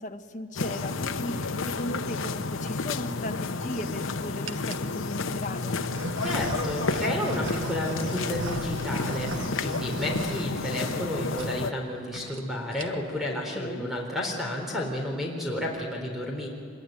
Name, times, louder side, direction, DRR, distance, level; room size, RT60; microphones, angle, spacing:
voice 1, 0.0-5.7 13.5-13.9, left 1 dB, 40° left, 4 dB, 1.6 m, -36 dB
sound 1, 0.6-11.7, left 3 dB, 90° left, 0.9 m, -31 dB
sound 2, 2.3-2.7 3.4-4.0 4.4-4.9 5.6-11.1 11.3-11.5 11.8-11.9 12.1-12.4 12.7-13.2, right 2 dB, 80° right, 1.4 m, -38 dB
voice 2, 6.2-16.5, left 1 dB, ahead, -1 dB, 4.1 m, -31 dB
25.5 x 22.0 x 9.4 m, 2.2 s
head